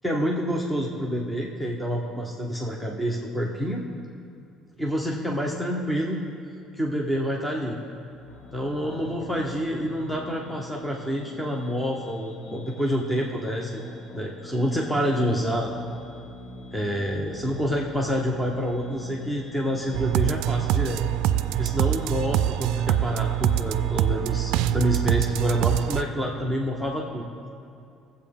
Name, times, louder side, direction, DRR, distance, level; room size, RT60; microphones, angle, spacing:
voice 1, 0.0-3.8 4.8-6.2 6.8-7.8 8.5-13.8 14.1-15.7 16.7-21.0 21.6-27.3, equal, 5° left, -1 dB, 0.7 m, -27 dB
sound 1, 7.8-24.2, left 2 dB, 55° left, 1.2 m, -44 dB
sound 2, 19.9-26.0, right 11 dB, 85° right, 0.3 m, -24 dB
19.5 x 7.6 x 3.6 m, 2.5 s
cardioid pair, 155°, 0 cm